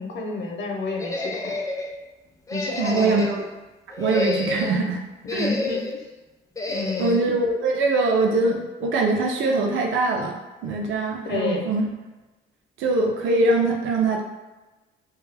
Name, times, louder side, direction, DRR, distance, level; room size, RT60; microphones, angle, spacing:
voice 1, 0.0-1.6 2.5-3.2 5.2-6.1 6.7-7.2 11.2-11.7, left 3 dB, 60° left, 1 dB, 0.6 m, -30 dB
sound 1, 1.0-1.9 2.5-3.4 3.9-4.8 5.3-6.0 6.6-7.2, left 2 dB, 15° left, 0.3 m, -29 dB
voice 2, 2.8-3.4 4.0-5.0 5.3-5.5 7.0-11.9 12.8-14.3, right 3 dB, 75° right, 1 dB, 0.5 m, -22 dB
2.3 x 2.2 x 3.2 m, 1.1 s
cardioid pair, 90°, 20 cm